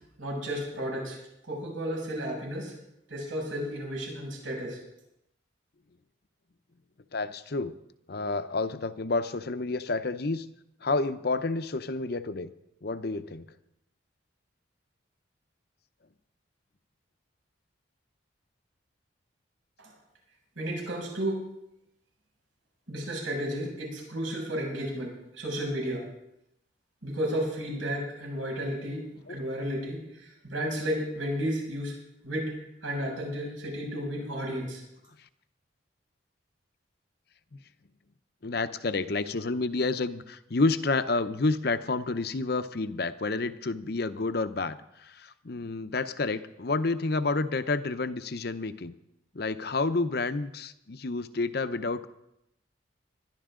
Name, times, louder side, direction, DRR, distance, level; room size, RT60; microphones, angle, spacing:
voice 1, 0.2-1.2 1.5-2.8 3.1-4.8 19.8-19.9 20.6-21.5 22.9-26.0 27.0-31.9 32.2-32.6 32.8-34.8, equal, 85° right, -1 dB, 6.5 m, -33 dB
voice 2, 7.1-7.8 8.1-10.5 10.8-12.5 12.8-13.5 29.3-29.4 38.4-48.9 49.3-52.1, left 3 dB, 55° left, 11 dB, 0.7 m, -29 dB
20.5 x 12.0 x 3.8 m, 0.83 s
head